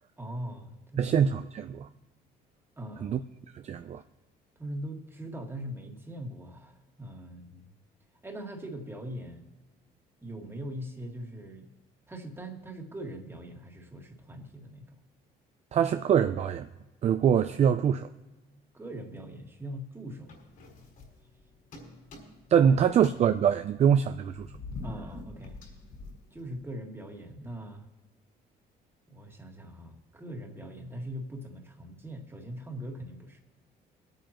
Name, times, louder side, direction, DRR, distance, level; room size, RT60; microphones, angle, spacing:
voice 1, 0.2-1.2 2.8-3.2 4.6-7.7 8.2-9.5 10.2-11.7 12.1-15.0 18.7-20.3 22.6-22.7 24.8-25.6 26.3-27.9 29.1-33.4, right 1 dB, 15° right, 1.9 m, -41 dB
voice 2, 1.0-1.9 3.0-3.2 3.5-4.0 15.7-16.7 17.0-18.1 22.5-24.5, right 8 dB, 40° right, 0.4 m, -24 dB
sound 1, 20.3-21.4 21.7-22.6 22.9-26.7, left 3 dB, 55° left, 4.7 m, -45 dB
24.0 x 9.0 x 3.0 m
cardioid pair, 110°, 17 cm